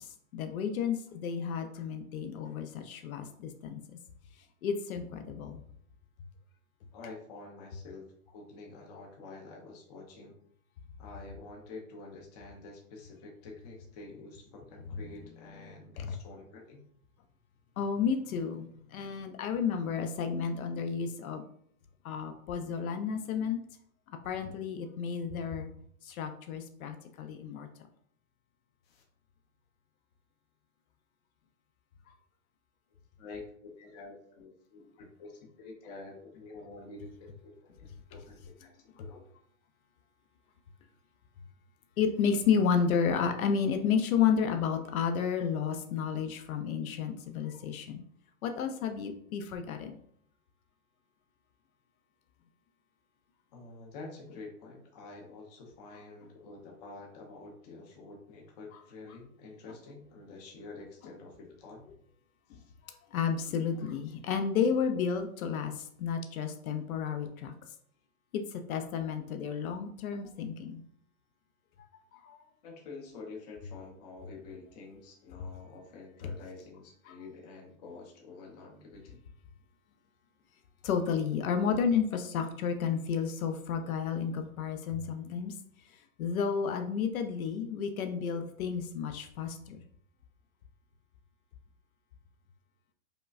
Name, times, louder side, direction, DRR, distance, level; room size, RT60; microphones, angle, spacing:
voice 1, 0.0-4.0 4.6-5.6 16.0-16.2 17.8-21.4 22.0-23.6 24.2-25.7 26.0-27.7 42.0-48.0 48.4-50.0 62.5-62.6 62.8-67.5 68.3-70.8 72.2-72.4 77.1-77.2 80.8-85.5 85.9-89.8, left 6 dB, 65° left, 6 dB, 0.6 m, -31 dB
voice 2, 6.9-10.3 11.0-16.8 28.8-29.0 33.2-38.7 39.0-39.2 53.5-61.8 62.5-62.6 72.6-79.2, left 3 dB, 30° left, 0 dB, 0.6 m, -48 dB
5.0 x 2.1 x 2.4 m, 0.65 s
hypercardioid pair, 160°, 45 cm